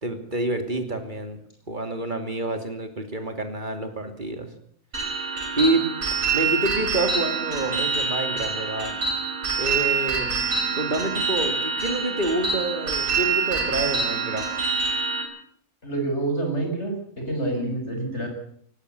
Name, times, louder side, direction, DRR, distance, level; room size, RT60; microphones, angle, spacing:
voice 1, 0.0-1.4 1.7-4.5 5.6-5.8 6.3-9.0 9.6-10.3 10.7-14.6, right 1 dB, 35° right, 6 dB, 2.9 m, -27 dB
sound 1, 4.9-15.2, right 5 dB, 80° right, 6.2 m, -26 dB
voice 2, 15.8-18.3, right 2 dB, 55° left, 3 dB, 6.8 m, -27 dB
18.5 x 18.0 x 8.3 m, 0.64 s
omnidirectional pair, 1.4 m